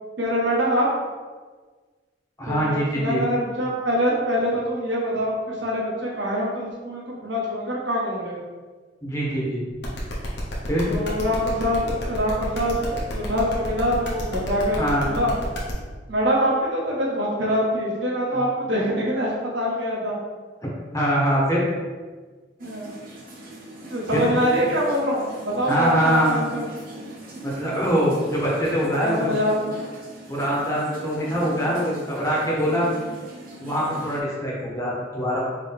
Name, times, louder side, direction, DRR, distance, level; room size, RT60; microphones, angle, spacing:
voice 1, 0.2-0.9 2.5-8.4 10.9-15.3 16.1-20.2 22.6-22.9 23.8-26.6 29.0-29.7, equal, 85° right, -5 dB, 1.3 m, -24 dB
voice 2, 2.4-3.2 9.0-9.6 10.7-10.9 14.8-15.1 20.9-21.7 24.1-24.3 25.7-26.4 27.4-29.4 30.3-32.9 33.6-35.4, equal, 20° left, -6 dB, 1.3 m, -23 dB
sound 1, 9.8-15.7, left 1 dB, 70° left, 1.1 m, -32 dB
sound 2, 22.6-34.2, right 1 dB, 50° right, 1.0 m, -41 dB
4.7 x 3.2 x 3.5 m, 1.4 s
head